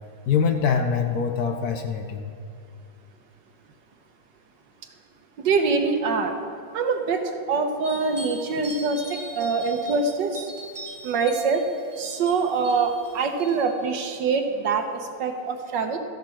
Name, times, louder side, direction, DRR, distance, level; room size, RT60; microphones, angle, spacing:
voice 1, 0.3-2.3, left 6 dB, 65° left, 5 dB, 1.1 m, -24 dB
voice 2, 5.4-6.4 6.7-10.5 11.0-11.6 12.0-16.0, right 4 dB, 70° right, 5 dB, 1.5 m, -24 dB
sound 1, 7.8-13.6, equal, 15° right, 2.2 m, -41 dB
14.0 x 11.0 x 4.5 m, 2.3 s
omnidirectional pair, 2.1 m